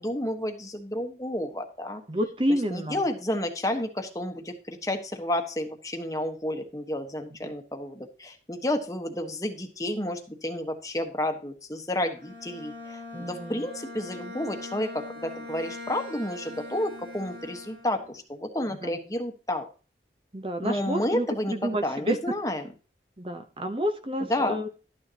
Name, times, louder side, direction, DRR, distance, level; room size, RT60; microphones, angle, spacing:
voice 1, 0.0-2.0 2.7-19.7 20.6-22.7 24.3-24.6, left 1 dB, 20° left, 5 dB, 1.3 m, -31 dB
voice 2, 2.1-3.0 7.4-7.5 13.1-13.7 18.8-19.0 20.3-22.2 23.2-24.7, equal, 30° right, 7 dB, 0.9 m, -29 dB
Bowed string instrument, 12.1-18.2, left 2 dB, 60° right, 4.2 m, -42 dB
13.0 x 9.6 x 2.9 m, 0.35 s
head